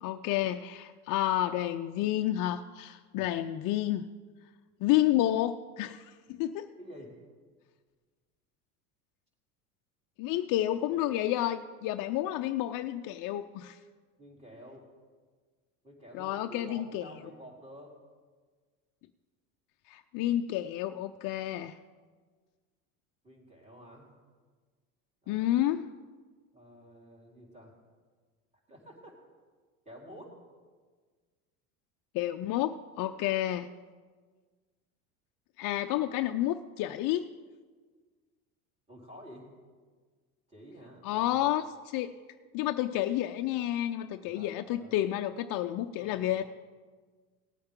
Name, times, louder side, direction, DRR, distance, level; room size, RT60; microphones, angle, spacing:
voice 1, 0.0-4.1 4.8-6.7 10.2-13.8 16.1-17.0 19.9-21.7 25.3-25.9 32.1-33.7 35.6-37.3 41.0-42.1 42.5-46.4, left 13 dB, 45° left, 6 dB, 0.5 m, -30 dB
voice 2, 6.8-7.2 14.2-14.9 15.8-18.0 23.2-24.1 25.2-25.5 26.5-27.7 28.7-29.2 29.8-30.4 38.9-39.5 40.5-41.4 44.2-45.2 46.0-46.4, equal, 15° right, -4 dB, 4.2 m, -50 dB
18.0 x 8.7 x 3.7 m, 1.5 s
hypercardioid pair, 85°, 44 cm